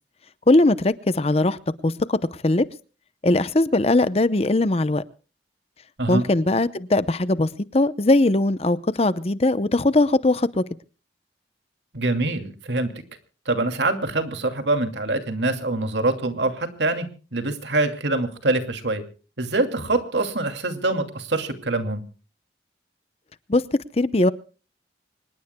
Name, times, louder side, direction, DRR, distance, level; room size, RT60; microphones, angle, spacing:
voice 1, 0.5-2.2 2.4-2.6 3.2-5.0 6.1-10.6 23.5-23.6 24.0-24.3, left 2 dB, 35° left, 15 dB, 0.7 m, -20 dB
voice 2, 11.9-12.9 13.5-17.1 17.3-19.0 19.4-22.0, right 2 dB, 85° right, 6 dB, 2.6 m, -24 dB
25.5 x 20.5 x 2.2 m, 0.37 s
head